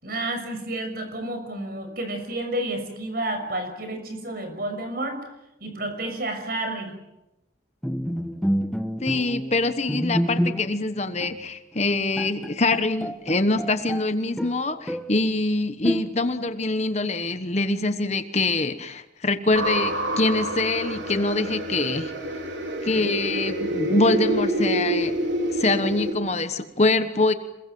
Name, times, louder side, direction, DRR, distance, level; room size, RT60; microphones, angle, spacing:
voice 1, 0.0-5.2 5.6-6.9, right 1 dB, 50° right, 7 dB, 6.2 m, -30 dB
Bowed string instrument, 7.8-10.9 11.2-11.4 11.9-12.0 12.2-14.1 14.4-15.2 15.8-16.4, equal, ahead, 1.1 m, -28 dB
voice 2, 9.0-22.1 22.8-25.1 25.5-27.3, left 2 dB, 35° left, 10 dB, 1.2 m, -24 dB
sound 1, 19.5-26.1, right 1 dB, 75° right, 4.4 m, -27 dB
27.5 x 22.0 x 7.7 m, 0.93 s
head